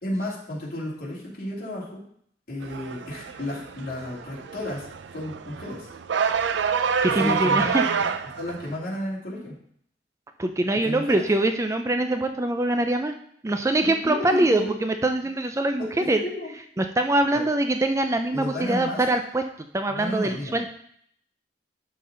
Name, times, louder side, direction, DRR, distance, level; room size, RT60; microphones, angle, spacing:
voice 1, 0.0-2.0 2.5-4.9 5.1-5.9 7.1-8.0 8.4-9.5 10.8-11.2 13.8-14.7 15.8-16.5 17.3-17.4 18.3-19.0 19.9-20.6, left 1 dB, 55° left, -5 dB, 2.6 m, -33 dB
sound 1, 2.6-8.8, right 6 dB, 80° right, 0.4 m, -27 dB
voice 2, 7.0-7.8 10.4-13.1 13.4-16.2 16.8-19.4 19.7-20.7, right 2 dB, 15° right, 6 dB, 0.4 m, -23 dB
11.5 x 4.0 x 3.8 m, 0.65 s
head